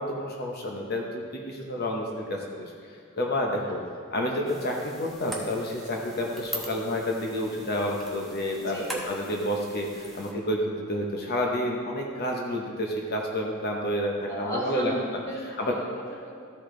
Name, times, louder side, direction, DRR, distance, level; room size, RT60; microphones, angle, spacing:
voice 1, 0.0-2.7 3.2-3.8 4.1-14.9 15.6-15.8, left 1 dB, 45° left, 0 dB, 0.9 m, -29 dB
sound 1, 4.5-10.3, right 1 dB, ahead, 1.0 m, -42 dB
voice 2, 8.6-8.9 14.3-16.3, equal, 15° left, -7 dB, 2.4 m, -36 dB
13.0 x 5.1 x 3.8 m, 2.2 s
head